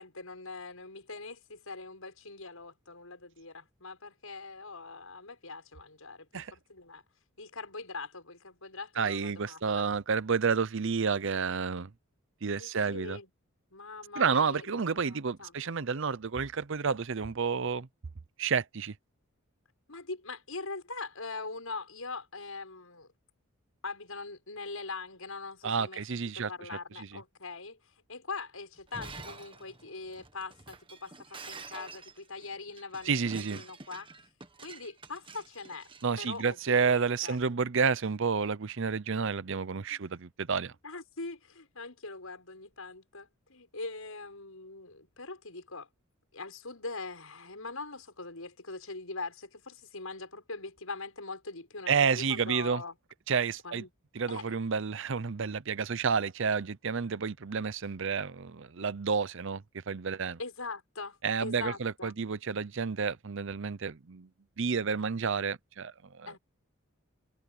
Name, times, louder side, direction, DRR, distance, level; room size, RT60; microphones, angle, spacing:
voice 1, 0.0-7.0 7.4-9.8 12.6-13.3 13.7-15.6 19.9-23.1 23.8-26.0 26.3-34.1 34.6-35.9 36.2-37.4 39.9-40.0 40.8-45.9 46.3-52.9 53.6-53.9 54.3-54.6 60.4-62.2 66.3-66.4, left 3 dB, 80° left, 6.6 m, -42 dB
voice 2, 9.0-11.9 12.4-13.2 14.2-17.9 18.4-18.9 25.6-26.5 33.1-33.6 36.0-40.7 51.9-52.8 53.3-53.8 54.1-60.4 61.2-64.3 64.6-66.3, right 5 dB, 60° right, 0.7 m, -30 dB
Shatter, 28.8-36.8, right 4 dB, 25° right, 1.7 m, -48 dB
head